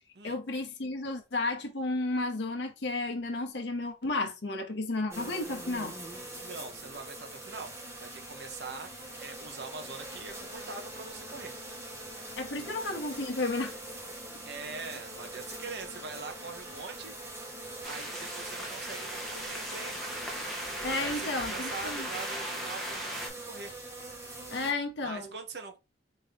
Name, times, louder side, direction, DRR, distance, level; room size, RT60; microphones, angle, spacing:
voice 1, 0.2-6.0 12.4-13.8 20.8-22.1 24.5-25.3, left 2 dB, 65° left, 0.7 m, -32 dB
sound 1, 5.1-24.7, right 1 dB, 15° right, 1.1 m, -43 dB
voice 2, 6.4-7.7 8.0-11.5 12.6-12.7 14.4-17.1 17.8-20.0 21.0-23.7 25.0-25.8, right 4 dB, 60° right, 0.8 m, -43 dB
sound 2, 17.8-23.3, equal, ahead, 0.7 m, -38 dB
3.9 x 2.7 x 3.4 m
head